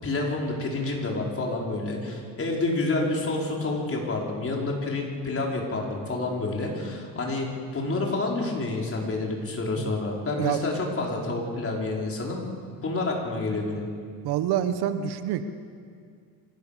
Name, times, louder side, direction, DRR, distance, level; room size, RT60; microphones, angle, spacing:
voice 1, 0.0-12.5 12.8-13.9, left 2 dB, 35° left, -1 dB, 5.2 m, -28 dB
voice 2, 14.2-15.4, right 11 dB, 70° right, 10 dB, 1.4 m, -26 dB
27.0 x 16.5 x 6.9 m, 2.2 s
supercardioid pair, 85°, 39 cm